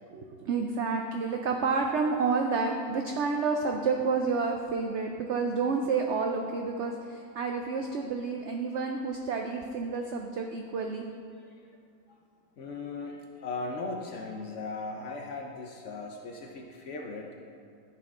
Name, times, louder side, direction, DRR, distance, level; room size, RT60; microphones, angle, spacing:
voice 1, 0.1-11.0, right 4 dB, 85° right, 3 dB, 0.6 m, -29 dB
voice 2, 12.6-17.3, left 3 dB, 65° left, 1 dB, 0.8 m, -38 dB
12.5 x 4.3 x 3.6 m, 2.4 s
omnidirectional pair, 1.8 m